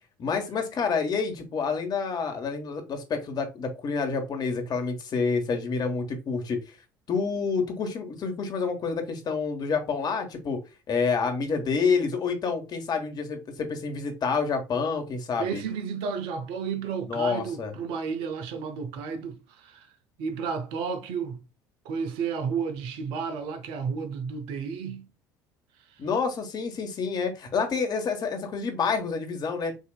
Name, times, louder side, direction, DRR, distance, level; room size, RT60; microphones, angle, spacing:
voice 1, 0.2-6.8 7.1-10.6 10.9-15.6 17.1-17.7 26.0-29.8, left 5 dB, 45° left, 1.4 m, -28 dB
voice 2, 15.4-19.9 20.2-21.4 21.8-25.1 25.9-26.0, right 6 dB, 65° right, 0.8 m, -32 dB
6.5 x 2.8 x 2.3 m
hypercardioid pair, 60°, 10 cm